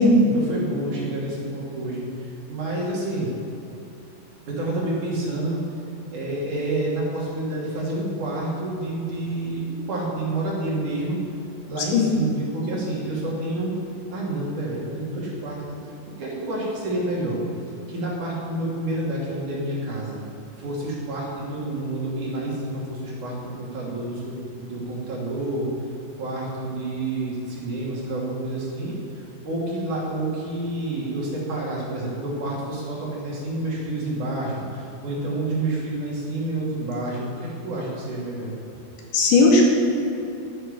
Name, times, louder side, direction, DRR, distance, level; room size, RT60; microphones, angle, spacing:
voice 1, 0.2-2.1 2.5-3.3 4.5-5.6 6.1-11.2 11.7-13.7 14.1-15.8 16.1-17.4 17.9-20.2 20.6-25.7 26.2-29.0 29.4-38.6, right 2 dB, 50° right, -5 dB, 4.0 m, -29 dB
voice 2, 11.8-12.1 39.1-39.7, left 3 dB, 90° left, -1 dB, 4.5 m, -16 dB
12.5 x 11.5 x 6.8 m, 2.9 s
omnidirectional pair, 5.0 m